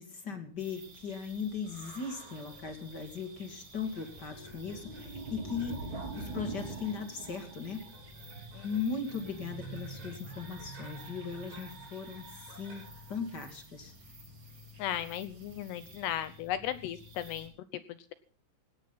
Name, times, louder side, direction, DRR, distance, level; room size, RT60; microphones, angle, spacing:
voice 1, 0.0-7.8 8.6-12.8 13.1-13.9, left 5 dB, 35° left, 7 dB, 1.7 m, -38 dB
sound 1, 0.5-17.5, left 4 dB, 5° left, 6.0 m, -55 dB
sound 2, 0.6-17.5, right 3 dB, 30° right, 3.2 m, -47 dB
sound 3, 3.9-13.3, right 2 dB, 55° right, 8.6 m, -57 dB
voice 2, 14.8-18.1, left 11 dB, 85° left, 13 dB, 2.4 m, -36 dB
18.0 x 17.5 x 4.1 m, 0.38 s
omnidirectional pair, 6.0 m